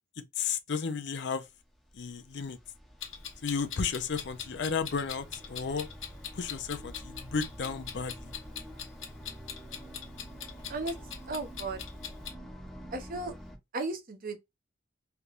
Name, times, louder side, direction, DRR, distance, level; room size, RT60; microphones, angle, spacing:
voice 1, 0.2-1.4 1.9-2.6 3.4-5.9 6.3-8.3, left 5 dB, 60° left, 0.5 m, -33 dB
sound 1, 1.4-13.6, equal, ahead, 0.8 m, -47 dB
Clock, 3.0-12.3, left 8 dB, 80° left, 1.1 m, -42 dB
voice 2, 11.3-11.8 12.9-13.3 13.7-14.4, right 2 dB, 45° right, 0.7 m, -35 dB
3.3 x 3.0 x 2.4 m
head